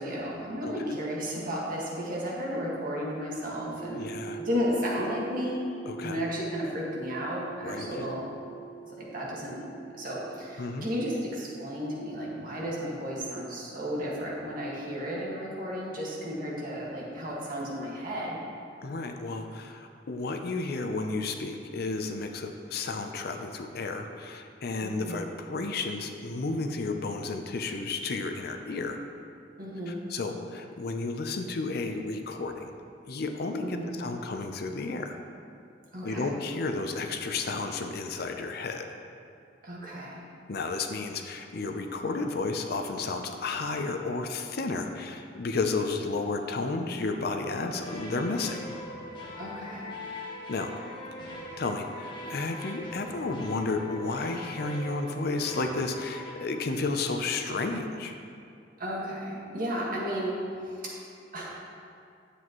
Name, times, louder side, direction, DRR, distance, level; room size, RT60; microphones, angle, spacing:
voice 1, 0.0-4.0 4.4-5.6 6.0-8.2 8.8-9.6 9.9-18.4 24.8-25.2 29.6-30.0 33.6-33.9 35.9-36.2 39.6-40.2 49.4-49.9 58.8-60.3 60.6-61.0 61.3-61.6, equal, 50° right, -5 dB, 1.8 m, -33 dB
sound 1, 3.8-15.7, right 8 dB, 25° right, 1.3 m, -45 dB
voice 2, 3.9-4.4 5.9-6.2 7.6-8.1 10.6-10.9 18.8-29.0 29.9-32.7 33.1-35.2 36.0-38.9 40.5-48.6 50.5-50.7 51.6-58.2, left 3 dB, 55° left, 6 dB, 0.6 m, -32 dB
sound 2, 47.5-56.3, left 1 dB, 25° left, 1.4 m, -42 dB
9.9 x 7.9 x 3.0 m, 2.4 s
head